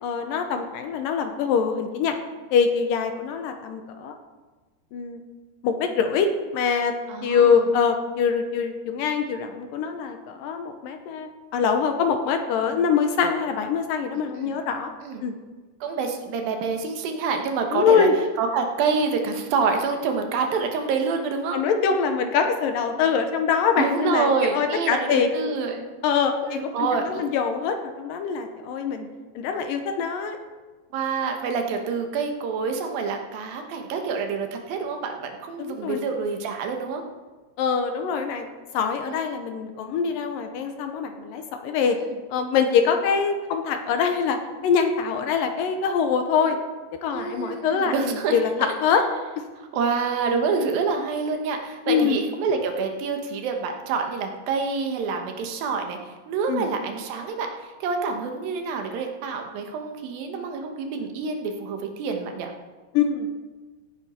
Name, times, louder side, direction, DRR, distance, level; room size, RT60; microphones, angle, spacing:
voice 1, 0.0-2.2 2.5-4.2 4.9-5.2 5.6-6.9 7.2-14.9 15.2-15.3 17.7-18.2 21.5-25.3 26.0-29.1 29.4-30.4 35.6-36.0 37.6-38.5 38.7-42.0 42.3-44.4 44.6-46.6 47.0-49.0 51.9-52.2 56.5-56.7 62.9-63.3, left 6 dB, 75° left, 6 dB, 2.3 m, -24 dB
voice 2, 7.1-7.6 14.3-14.6 15.0-15.2 15.8-18.1 18.4-21.6 23.8-25.9 26.4-27.2 30.9-37.0 39.1-39.4 47.1-48.4 49.7-56.0 56.3-57.5 57.8-62.5, right 5 dB, 70° right, 4 dB, 2.9 m, -27 dB
16.5 x 9.7 x 4.4 m, 1.3 s
omnidirectional pair, 4.5 m